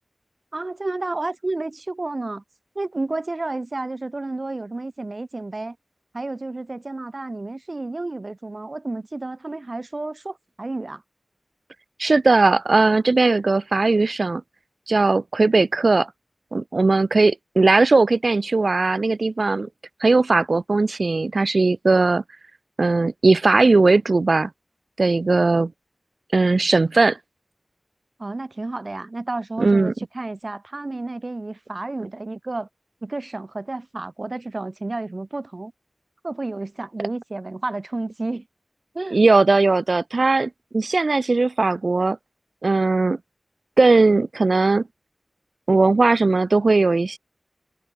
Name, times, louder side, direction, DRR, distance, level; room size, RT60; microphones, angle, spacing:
voice 1, 0.5-2.4 2.8-5.8 6.1-11.0 28.2-32.7 33.0-35.7 36.2-38.4 38.9-39.2, right 2 dB, 60° right, 6.0 m, -31 dB
voice 2, 12.0-14.4 14.9-16.1 16.5-19.7 20.0-22.2 22.8-24.5 25.0-25.7 26.3-27.2 29.6-29.9 39.1-42.2 42.6-43.2 43.8-44.8 45.7-47.2, right 3 dB, 90° right, 3.3 m, -18 dB
wide cardioid pair, 55°, 0 cm